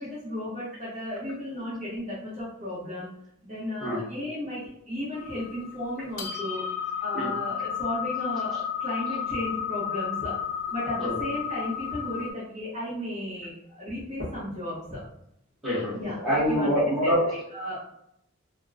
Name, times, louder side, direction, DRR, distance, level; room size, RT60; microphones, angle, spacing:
voice 1, 0.0-3.1 3.4-10.3 10.7-15.0 15.9-16.2 16.5-16.7 17.0-17.8, left 1 dB, 35° right, -9 dB, 1.0 m, -34 dB
sound 1, 5.1-12.3, left 8 dB, 75° left, 0.5 m, -32 dB
voice 2, 15.6-17.2, equal, ahead, -10 dB, 1.4 m, -25 dB
3.5 x 2.2 x 2.4 m, 0.75 s
head